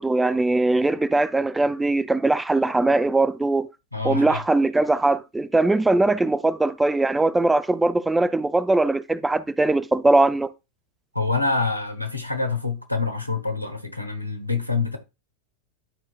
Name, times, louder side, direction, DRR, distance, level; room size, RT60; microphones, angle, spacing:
voice 1, 0.0-3.7 4.0-10.5, right 2 dB, 10° right, 0.4 m, -21 dB
voice 2, 3.9-4.4 11.1-15.0, left 4 dB, 90° left, 1.1 m, -26 dB
11.0 x 4.5 x 2.3 m
figure-of-eight pair, 90°, 0 cm